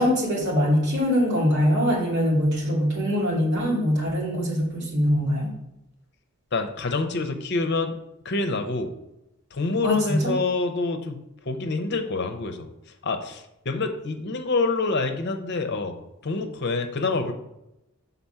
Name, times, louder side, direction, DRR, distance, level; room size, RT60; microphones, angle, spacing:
voice 1, 0.0-5.5 9.8-10.3, equal, 55° right, -6 dB, 2.5 m, -23 dB
voice 2, 6.5-7.9 8.2-8.9 9.5-11.2 11.5-12.7 13.0-15.9 16.2-17.3, left 3 dB, 55° left, 6 dB, 0.7 m, -26 dB
5.9 x 4.1 x 5.5 m, 0.88 s
head